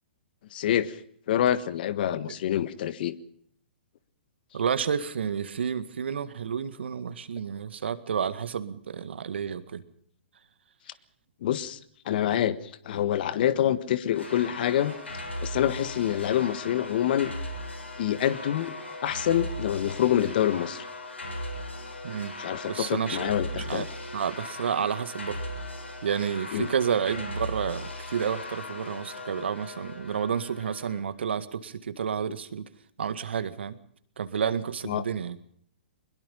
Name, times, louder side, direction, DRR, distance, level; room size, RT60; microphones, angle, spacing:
voice 1, 0.5-1.0 1.3-3.1 11.4-11.8 12.0-12.6 12.8-14.9 15.4-17.3 18.0-18.7 19.0-20.9 22.4-23.8 26.5-26.7 34.8-35.0, left 11 dB, 55° left, 15 dB, 1.5 m, -26 dB
voice 2, 4.5-9.8 22.0-22.3 22.7-23.9 24.1-25.4 26.0-32.6 33.0-33.8 34.2-35.4, right 7 dB, 70° right, 12 dB, 1.9 m, -30 dB
sound 1, 14.1-31.0, left 1 dB, 90° left, 7.3 m, -38 dB
22.5 x 21.5 x 5.5 m, 0.65 s
hypercardioid pair, 125°, 6 cm